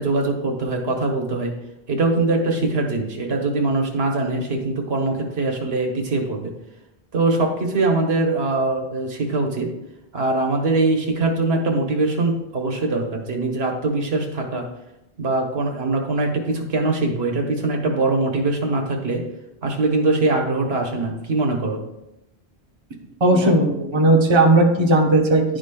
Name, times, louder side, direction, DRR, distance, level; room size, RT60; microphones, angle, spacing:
voice 1, 0.0-1.5 1.9-6.5 7.1-9.7 10.1-14.6 15.2-19.2 19.6-21.8, right 2 dB, 70° right, 2 dB, 1.2 m, -22 dB
voice 2, 23.2-25.4, right 2 dB, 30° right, 1 dB, 0.8 m, -16 dB
10.5 x 5.0 x 2.2 m, 0.89 s
omnidirectional pair, 1.1 m